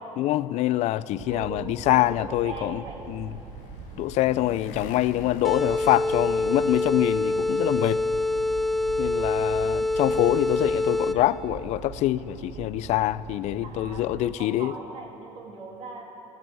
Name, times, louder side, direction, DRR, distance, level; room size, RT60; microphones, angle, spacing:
voice 1, 0.2-2.8 3.1-3.3 4.0-8.0 9.0-14.7, left 15 dB, 60° left, 18 dB, 0.4 m, -25 dB
Mayflower Park soundscape, 1.1-14.4, right 10 dB, 70° right, 0.5 m, -43 dB
voice 2, 1.3-3.2 10.0-10.4 13.6-16.0, right 3 dB, 50° right, -1 dB, 2.5 m, -40 dB
Motorcycle, 2.7-7.3, left 5 dB, 80° left, 1.1 m, -46 dB
sound 1, 5.4-11.4, left 2 dB, ahead, 0.6 m, -26 dB
15.5 x 8.9 x 6.5 m, 2.8 s
cardioid pair, 115°, 13 cm